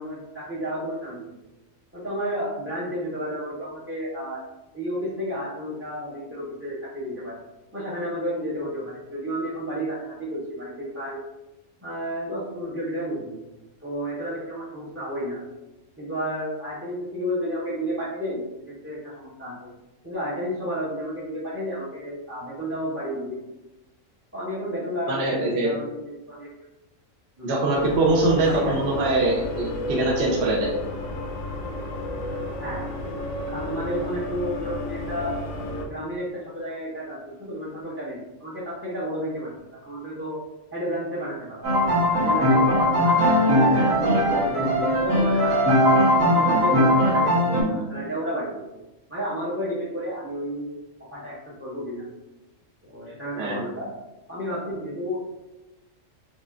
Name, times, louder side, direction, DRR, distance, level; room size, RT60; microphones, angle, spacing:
voice 1, 0.0-1.4 1.9-4.4 4.7-7.4 7.7-11.2 11.8-13.4 13.8-15.4 16.0-19.7 20.0-23.4 24.3-26.5 27.4-27.6 28.5-29.1 32.6-33.0 33.5-35.4 35.8-39.5 39.9-40.4 40.7-41.7 42.1-45.6 46.2-48.7 49.1-50.7 51.1-52.1 52.8-53.9 54.3-55.2, equal, 15° right, -7 dB, 0.5 m, -31 dB
voice 2, 25.1-25.7 27.4-30.7 53.4-53.7, right 2 dB, 60° right, -3 dB, 0.9 m, -23 dB
sound 1, 27.7-35.9, left 1 dB, 90° left, 1.0 m, -31 dB
sound 2, 41.6-47.6, equal, 85° right, 1.7 m, -19 dB
5.1 x 2.4 x 2.5 m, 1.0 s
omnidirectional pair, 1.3 m